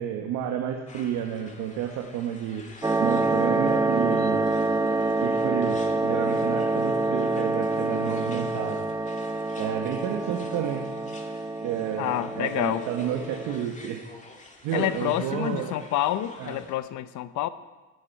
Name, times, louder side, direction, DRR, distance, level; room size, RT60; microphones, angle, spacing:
voice 1, 0.0-2.7 3.0-4.5 5.2-8.9 9.5-10.9 11.6-14.1 14.6-15.7 16.4-16.6, right 9 dB, 75° right, 3 dB, 1.4 m, -31 dB
sound 1, 0.9-16.7, left 2 dB, 20° left, 2.2 m, -48 dB
sound 2, 2.8-13.6, right 2 dB, 10° right, 0.6 m, -27 dB
voice 2, 12.0-12.9 14.7-17.5, left 13 dB, 65° left, 14 dB, 0.8 m, -28 dB
17.5 x 9.7 x 4.6 m, 1.2 s
cardioid pair, 100°, 32 cm